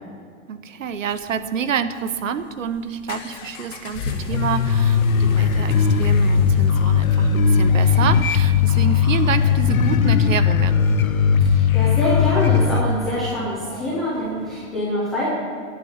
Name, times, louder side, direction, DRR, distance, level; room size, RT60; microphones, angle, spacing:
voice 1, 0.5-10.9, right 7 dB, 70° right, 11 dB, 1.3 m, -28 dB
sound 1, 0.8-14.7, left 4 dB, 15° left, 0.9 m, -35 dB
sound 2, 4.3-12.8, left 6 dB, 85° left, 1.3 m, -18 dB
voice 2, 11.4-15.3, left 1 dB, ahead, -12 dB, 0.5 m, -25 dB
17.0 x 10.0 x 8.1 m, 2.1 s
hypercardioid pair, 170°, 40 cm